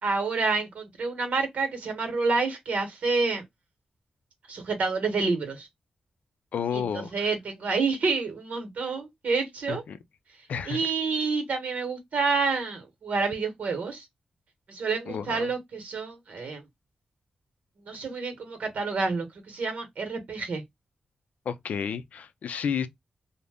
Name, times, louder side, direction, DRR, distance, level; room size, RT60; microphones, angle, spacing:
voice 1, 0.0-3.4 4.5-5.7 6.7-9.8 10.7-14.1 14.7-16.6 17.9-20.6, right 4 dB, 75° right, 0.9 m, -28 dB
voice 2, 6.5-7.3 9.7-10.0 10.5-10.8 15.1-15.5 21.5-22.9, left 7 dB, 80° left, 0.4 m, -31 dB
2.6 x 2.1 x 3.3 m
cardioid pair, 60°, 2 cm